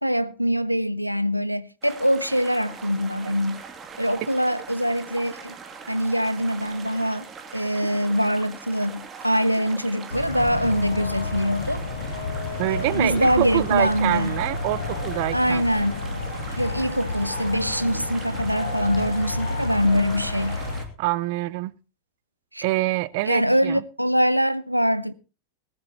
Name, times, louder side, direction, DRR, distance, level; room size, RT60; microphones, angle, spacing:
voice 1, 0.0-3.6 4.0-5.6 5.9-7.3 7.5-11.8 12.7-14.3 15.3-16.0 16.6-20.6 22.5-22.6 23.2-25.1, equal, 90° right, 0.8 m, -23 dB
sound 1, 1.8-20.9, right 5 dB, 25° right, 2.7 m, -41 dB
sound 2, 10.1-20.8, left 3 dB, 75° left, 2.7 m, -31 dB
voice 2, 12.6-15.6 21.0-21.7 22.6-23.8, right 19 dB, 50° right, 0.8 m, -25 dB
20.0 x 14.0 x 3.0 m
figure-of-eight pair, 90°, 0 cm